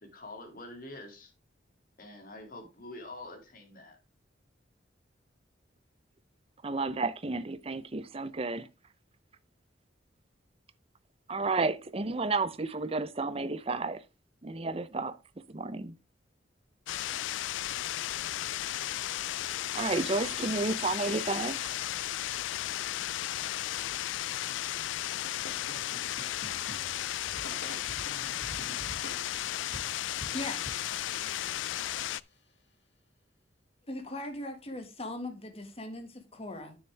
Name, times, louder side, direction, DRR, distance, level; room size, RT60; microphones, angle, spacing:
voice 1, 0.0-1.3 2.0-4.0, left 2 dB, 50° left, 2.5 m, -46 dB
voice 2, 6.6-8.7 11.3-14.0 14.4-15.2 15.5-15.9 19.7-21.8, right 3 dB, 30° right, 0.6 m, -31 dB
sound 1, 16.9-32.2, left 13 dB, 85° left, 0.3 m, -34 dB
sound 2, 25.2-32.3, left 1 dB, 65° left, 2.2 m, -47 dB
voice 3, 30.3-31.1 33.9-36.8, left 1 dB, 35° left, 1.8 m, -40 dB
9.7 x 7.1 x 3.4 m
head